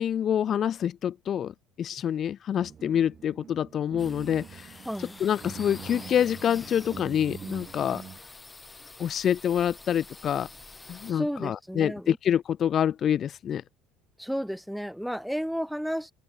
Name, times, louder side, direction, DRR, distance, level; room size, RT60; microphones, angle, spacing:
voice 1, 0.0-1.5 1.8-4.7 5.2-8.0 9.0-10.5 10.9-13.6, left 9 dB, 50° left, 0.3 m, -26 dB
sound 1, 2.6-8.2, right 7 dB, 40° right, 3.0 m, -44 dB
sound 2, 4.0-11.1, left 3 dB, 20° left, 2.3 m, -47 dB
voice 2, 4.9-5.2 11.1-12.2 14.2-16.1, equal, ahead, 0.7 m, -32 dB
hypercardioid pair, 80°, 0 cm